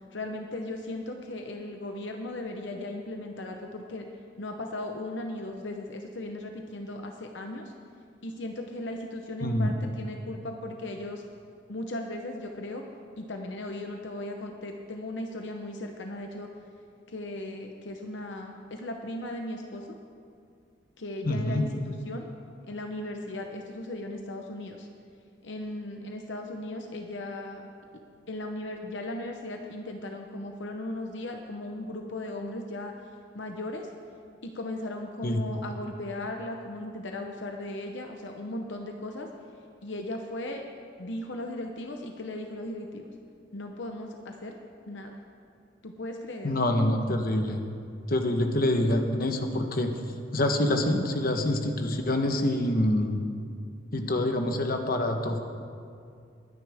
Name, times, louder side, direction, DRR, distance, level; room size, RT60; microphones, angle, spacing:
voice 1, 0.0-4.1 4.4-7.7 8.2-11.2 11.7-12.8 13.2-16.5 17.1-19.9 21.0-22.3 22.7-24.9 25.4-27.7 28.3-32.9 33.3-33.9 34.4-39.3 39.8-40.6 41.0-43.1 43.5-44.6 44.9-45.2 45.8-46.6, left 1 dB, 65° left, 3 dB, 0.9 m, -37 dB
voice 2, 9.4-9.7 21.2-21.6 35.2-35.4 46.4-47.6 48.1-49.9 50.3-53.2 53.9-55.4, left 1 dB, 50° left, 4 dB, 1.1 m, -26 dB
22.0 x 9.9 x 3.5 m, 2.4 s
head